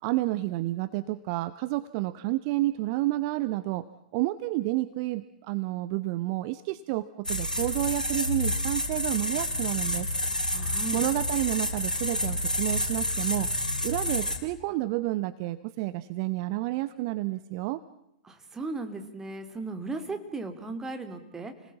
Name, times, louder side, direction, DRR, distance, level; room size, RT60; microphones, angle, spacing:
voice 1, 0.0-3.9 4.1-10.1 10.9-13.5 13.8-17.8, right 18 dB, 40° right, 15 dB, 0.8 m, -30 dB
sound 1, 7.2-14.4, left 1 dB, 85° left, 3.1 m, -29 dB
voice 2, 10.5-11.0 18.2-21.5, right 3 dB, 10° right, 7 dB, 2.7 m, -36 dB
29.5 x 20.0 x 7.2 m, 0.83 s
figure-of-eight pair, 105°, 4 cm